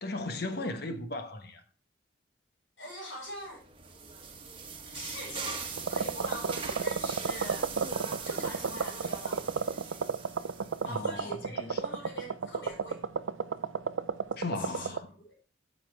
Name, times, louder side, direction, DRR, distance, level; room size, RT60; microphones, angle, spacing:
voice 1, 0.0-1.6 10.9-11.8 14.4-15.1, left 2 dB, 55° left, 1.3 m, -36 dB
voice 2, 2.8-3.6 4.9-7.7 8.3-9.8 10.8-13.0 14.6-15.5, equal, 80° left, 5.4 m, -43 dB
sound 1, 3.5-11.0, right 5 dB, 25° right, 1.3 m, -41 dB
sound 2, 5.8-15.0, right 5 dB, 90° right, 0.5 m, -32 dB
8.5 x 7.5 x 4.6 m
head